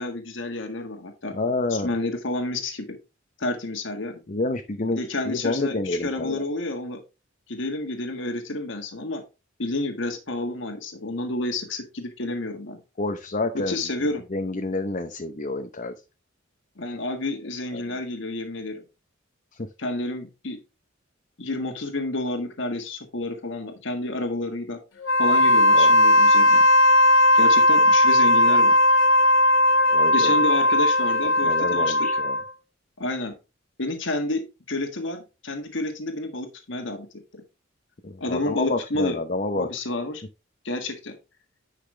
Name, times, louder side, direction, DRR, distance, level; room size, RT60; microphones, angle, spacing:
voice 1, 0.0-1.3 1.7-3.0 3.4-4.2 4.9-7.0 7.5-9.2 9.6-12.8 13.7-14.2 16.8-18.8 19.8-20.6 21.4-24.8 25.2-26.6 27.3-28.7 30.1-32.1 33.0-33.3 33.8-37.1 37.3-37.4 38.2-39.2 39.5-40.2 40.6-41.2, left 2 dB, 65° left, 4 dB, 1.6 m, -30 dB
voice 2, 1.3-1.9 4.3-5.0 5.3-6.4 13.0-13.9 14.3-15.9 17.7-18.0 19.6-19.7 25.7-25.9 29.9-30.4 31.4-32.4 38.0-39.7, left 2 dB, 40° left, 6 dB, 0.8 m, -28 dB
Wind instrument woodwind instrument, 25.0-32.5, left 1 dB, 80° left, 1.7 m, -17 dB
10.0 x 5.9 x 3.2 m, 0.28 s
head